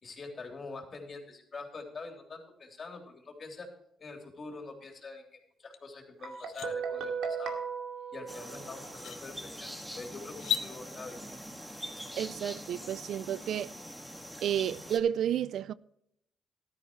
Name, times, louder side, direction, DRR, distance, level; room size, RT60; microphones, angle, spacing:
voice 1, 0.0-3.7 4.0-7.6 8.1-11.2, left 3 dB, 40° left, 3.4 m, -45 dB
sound 1, 5.7-5.8 6.2-6.7 8.3-8.4 8.9-9.2 10.3-10.7, left 9 dB, 70° left, 1.1 m, -34 dB
Guitar, 6.2-9.0, right 6 dB, 90° right, 2.4 m, -37 dB
sound 2, 8.3-15.0, equal, 5° right, 2.0 m, -44 dB
voice 2, 12.2-13.7 14.4-15.7, right 9 dB, 70° right, 0.4 m, -31 dB
13.5 x 12.0 x 3.2 m
cardioid pair, 90°, 0 cm